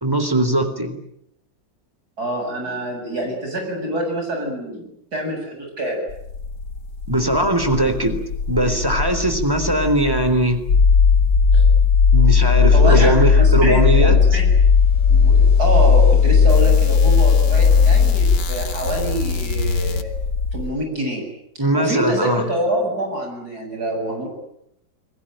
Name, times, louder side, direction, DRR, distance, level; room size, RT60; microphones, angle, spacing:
voice 1, 0.0-1.0 7.1-8.2 8.5-10.6 12.1-14.2 21.6-22.4, right 1 dB, 10° right, 8 dB, 3.7 m, -20 dB
voice 2, 2.2-6.0 11.5-11.6 12.7-14.5 15.1-20.1 20.5-21.2 21.5-24.3, right 1 dB, 50° right, 2 dB, 8.1 m, -26 dB
sound 1, 6.1-20.7, left 5 dB, 65° left, 2.3 m, -16 dB
29.0 x 21.5 x 9.0 m, 0.76 s
omnidirectional pair, 2.1 m